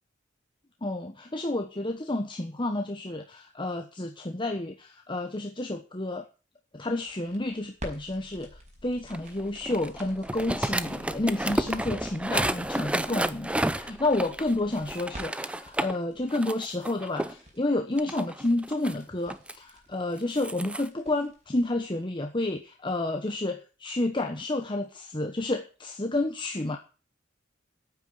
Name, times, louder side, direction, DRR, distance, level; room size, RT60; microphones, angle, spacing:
voice 1, 0.8-6.2 6.7-26.8, left 2 dB, 25° left, 4 dB, 1.2 m, -30 dB
sound 1, 6.8-22.0, equal, 40° right, 5.2 m, -49 dB
sound 2, 9.1-16.0 16.3-17.3 18.0-19.5 20.2-20.9, right 1 dB, 5° right, 0.6 m, -31 dB
9.3 x 8.8 x 9.2 m, 0.36 s
head